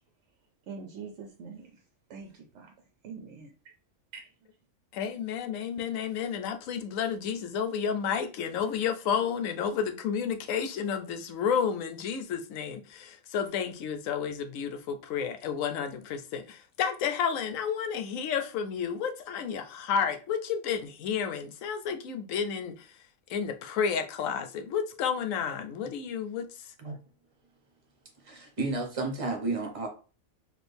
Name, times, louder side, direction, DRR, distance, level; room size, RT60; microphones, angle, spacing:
voice 1, 0.7-1.8 2.1-2.7 3.0-3.5 4.1-4.3, right 5 dB, 65° right, 0.8 m, -44 dB
voice 2, 4.9-22.9 23.3-26.5, left 7 dB, 75° left, 1.0 m, -31 dB
voice 3, 28.2-29.9, right 3 dB, 30° right, 0.9 m, -32 dB
4.3 x 2.6 x 3.3 m
omnidirectional pair, 1.4 m